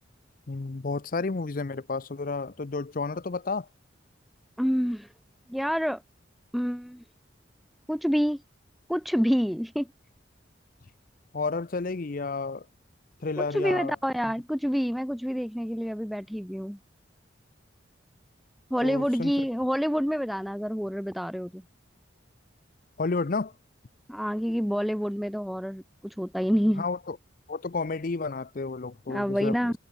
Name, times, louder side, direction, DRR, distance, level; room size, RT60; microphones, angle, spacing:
voice 1, 0.5-3.7 11.3-12.7 13.2-13.9 18.8-19.3 23.0-23.5 26.8-27.2 27.5-29.7, left 3 dB, 45° left, 0.6 m, -31 dB
voice 2, 4.6-5.1 5.5-6.0 6.5-7.0 7.9-8.4 8.9-9.9 13.4-16.8 18.7-21.6 24.1-26.8 29.1-29.7, equal, ahead, 0.3 m, -27 dB
head